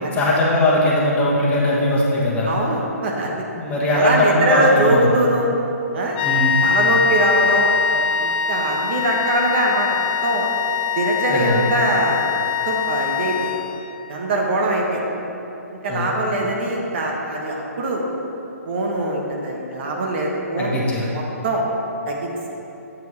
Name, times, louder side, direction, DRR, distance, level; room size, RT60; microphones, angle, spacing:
voice 1, 0.1-2.5 3.6-5.1 6.2-6.5 11.3-11.6 15.9-16.1 20.6-21.1, left 1 dB, 15° left, -6 dB, 1.4 m, -19 dB
voice 2, 2.5-3.3 3.9-5.5 5.9-6.2 6.6-10.5 10.9-12.3 12.6-13.5 14.1-15.0 15.8-18.0 18.7-20.8 21.1-21.6 22.1-22.3, right 1 dB, 45° right, -1 dB, 1.2 m, -22 dB
sound 1, 6.2-14.0, left 7 dB, 35° left, 0.4 m, -22 dB
9.1 x 7.3 x 3.2 m, 3.0 s
figure-of-eight pair, 135°, 8 cm